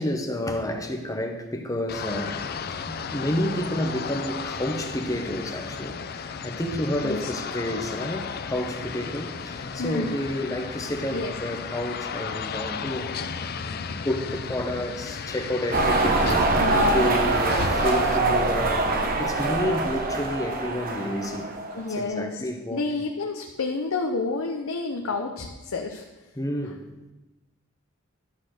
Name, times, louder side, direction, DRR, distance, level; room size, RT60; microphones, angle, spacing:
voice 1, 0.0-2.4 2.9-21.5 21.9-23.0 26.4-26.8, left 1 dB, 15° left, 4 dB, 0.9 m, -30 dB
sound 1, 1.9-18.2, left 5 dB, 50° left, 0.5 m, -34 dB
voice 2, 9.8-10.2 11.1-11.3 13.9-14.0 16.5-17.1 21.7-22.4 22.7-26.0 26.6-26.7, left 3 dB, 85° left, 3 dB, 0.7 m, -29 dB
sound 2, 15.7-21.9, right 2 dB, 45° right, 1.0 m, -24 dB
12.0 x 4.1 x 6.5 m, 1.1 s
head